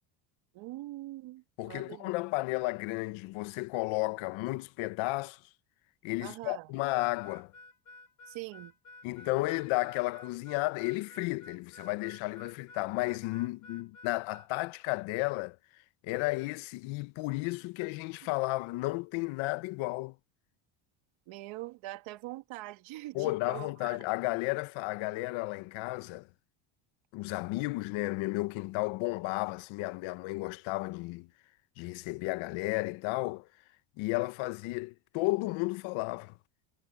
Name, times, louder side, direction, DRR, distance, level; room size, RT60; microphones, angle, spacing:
voice 1, 0.5-2.1 6.2-6.7 8.3-8.7 21.3-24.0, right 18 dB, 65° right, 2.1 m, -43 dB
voice 2, 1.6-5.4 6.0-7.5 9.0-15.6 16.0-20.2 23.1-26.3 27.1-31.3 31.8-33.5 34.0-36.3, left 22 dB, 70° left, 1.1 m, -33 dB
Harmonica, 7.2-14.5, left 2 dB, 35° left, 1.9 m, -53 dB
cardioid pair, 120°, 50 cm